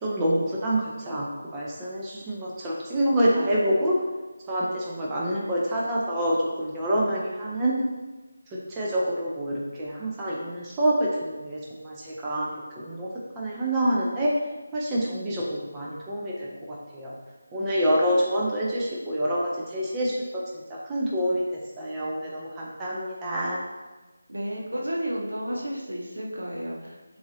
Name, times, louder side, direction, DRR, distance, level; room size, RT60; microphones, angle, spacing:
voice 1, 0.0-4.0 4.5-7.8 8.7-13.1 13.4-14.3 14.7-15.4 15.7-17.1 17.5-20.4 20.9-21.4 21.8-23.6, equal, 15° right, -5 dB, 0.5 m, -27 dB
voice 2, 24.3-27.2, equal, 75° right, -2 dB, 1.0 m, -32 dB
6.8 x 2.6 x 2.7 m, 1.2 s
figure-of-eight pair, 160°, 0 cm